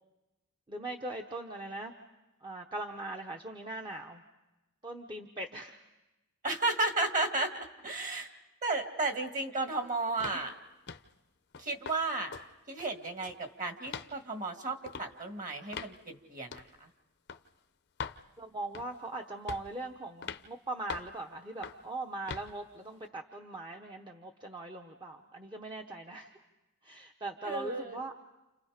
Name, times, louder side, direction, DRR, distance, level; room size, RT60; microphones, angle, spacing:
voice 1, 0.7-1.9 2.4-4.2 4.8-5.8 18.4-26.3 26.8-28.1, right 2 dB, 20° right, 2 dB, 1.1 m, -40 dB
voice 2, 6.4-7.5 7.8-8.3 8.6-10.5 11.6-12.3 12.7-16.9 27.4-28.0, right 2 dB, 35° right, 5 dB, 2.2 m, -33 dB
sound 1, 10.2-10.4 10.9-11.1 11.5-12.0 12.3-12.5 12.8-13.4 13.9-14.1 14.9-15.1 15.7-16.0 16.5-16.7 17.3-17.4 18.0-18.2 18.7-19.0 19.5-19.8 20.2-20.5 20.9-21.2 21.6-21.9 22.3-22.5, left 6 dB, 50° left, 0.8 m, -41 dB
29.5 x 29.5 x 5.1 m, 1.0 s
head